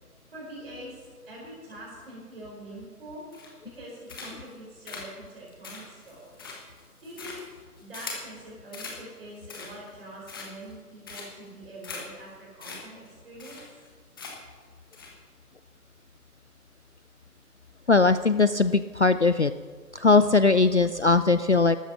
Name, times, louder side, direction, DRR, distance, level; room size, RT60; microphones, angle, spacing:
voice 1, 0.3-3.2 3.6-6.4 7.0-7.4 7.8-13.6, right 1 dB, 40° right, -5 dB, 4.8 m, -44 dB
sound 1, 3.3-3.7 4.1-4.5 4.9-8.3 8.7-9.0 9.4-9.9 10.3-10.7 11.1-11.5 11.8-12.0 12.3-12.4 12.6-12.8 13.1-13.2 13.4-13.9 14.2-14.5 14.9-15.1, left 4 dB, 15° left, 1.3 m, -41 dB
voice 2, 17.9-19.5 19.9-21.8, left 3 dB, 50° left, 12 dB, 0.5 m, -20 dB
13.5 x 13.0 x 5.9 m, 1.5 s
figure-of-eight pair, 150°, 46 cm